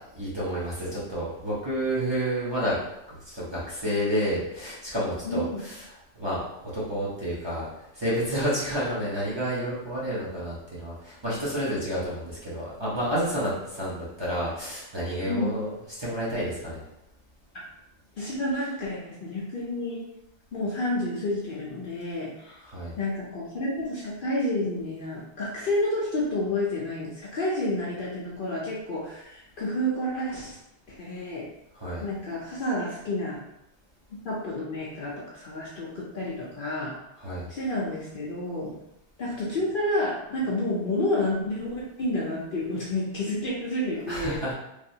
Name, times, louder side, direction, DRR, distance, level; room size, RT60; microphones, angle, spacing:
voice 1, 0.1-2.8 3.1-5.9 6.2-7.7 7.9-15.7 16.0-16.8 22.6-22.9 31.8-32.0 37.2-37.5 44.1-44.5, equal, 25° right, -9 dB, 0.8 m, -30 dB
voice 2, 5.2-5.6 15.3-15.6 17.5-17.6 18.2-20.0 20.5-22.6 23.0-30.6 30.9-31.5 32.0-33.4 34.2-36.9 37.5-38.8 39.2-44.4, left 1 dB, 55° left, -5 dB, 0.7 m, -30 dB
3.2 x 2.6 x 2.7 m, 0.86 s
omnidirectional pair, 1.2 m